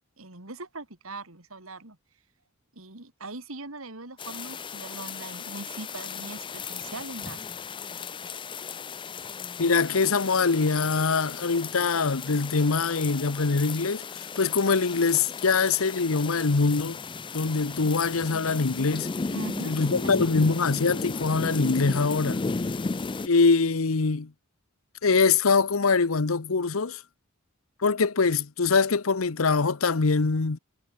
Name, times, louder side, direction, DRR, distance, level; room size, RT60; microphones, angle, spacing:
voice 1, 0.2-2.0 2.7-7.5 19.3-19.9, right 2 dB, 85° right, 3.5 m, -41 dB
sound 1, 4.2-23.3, left 4 dB, 25° left, 0.4 m, -35 dB
voice 2, 9.6-17.0 17.3-19.1 19.6-22.4 23.3-24.3 25.0-27.0 27.8-30.6, left 4 dB, 80° left, 0.9 m, -23 dB
head